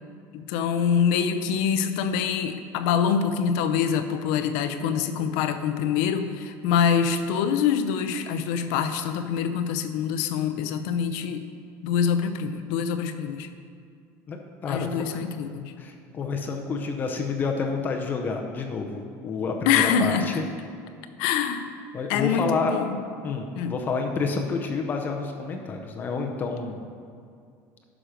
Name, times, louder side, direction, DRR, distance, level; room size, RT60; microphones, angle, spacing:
voice 1, 0.3-11.4 11.8-13.5 14.7-15.8 19.7-20.3 21.2-21.7 22.1-23.0 23.5-23.7, left 7 dB, 75° left, 9 dB, 0.7 m, -25 dB
voice 2, 14.3-15.2 15.8-20.4 21.9-22.7 23.2-26.8, left 4 dB, 25° left, 3 dB, 0.7 m, -29 dB
10.0 x 6.2 x 5.0 m, 2.3 s
cardioid pair, 160°, 7 cm